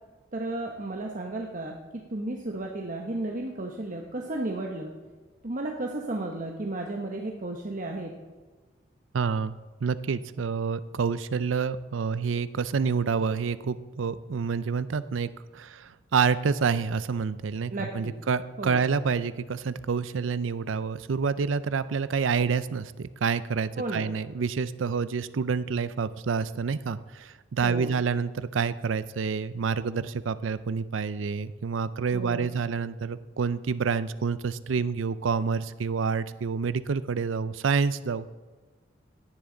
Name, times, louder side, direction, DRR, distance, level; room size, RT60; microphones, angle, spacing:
voice 1, 0.3-1.8 2.1-4.9 5.4-8.1 17.7-18.1 18.6-18.8 23.8-24.1 27.6-28.0 32.1-32.5, right 2 dB, 45° right, 1 dB, 1.0 m, -33 dB
voice 2, 9.1-9.5 9.8-38.3, right 5 dB, 85° right, 15 dB, 0.5 m, -28 dB
16.5 x 10.5 x 3.9 m, 1.3 s
head